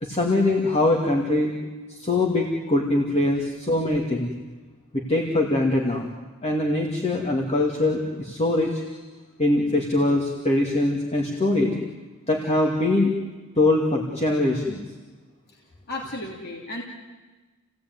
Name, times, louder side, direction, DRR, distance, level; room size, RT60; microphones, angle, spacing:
voice 1, 0.0-1.5 1.9-4.3 4.9-6.1 6.4-8.8 9.4-11.7 12.3-13.1 13.6-14.8, left 2 dB, 30° left, 0 dB, 2.4 m, -22 dB
voice 2, 15.9-16.8, left 1 dB, 50° left, -1 dB, 2.8 m, -33 dB
29.5 x 17.0 x 9.6 m, 1.3 s
head